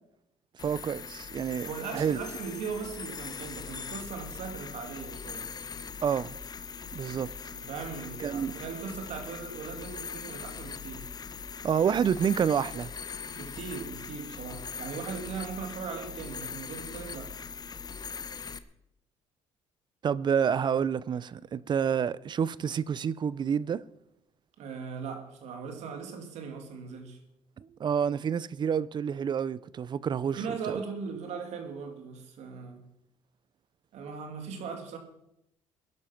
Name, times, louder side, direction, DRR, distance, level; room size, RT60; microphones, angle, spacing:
sound 1, 0.6-18.6, left 6 dB, 35° left, 0.9 m, -41 dB
voice 1, 0.6-2.2 6.0-6.4 6.9-7.3 8.2-8.6 11.6-12.9 20.0-23.8 27.6-30.4 30.7-30.8, right 7 dB, 40° right, 0.5 m, -28 dB
voice 2, 1.7-5.5 7.5-11.1 13.3-17.4 24.6-27.2 30.3-32.9 33.9-35.0, right 5 dB, 70° right, 2.8 m, -39 dB
16.0 x 11.0 x 5.9 m
cardioid pair, 105°, 12 cm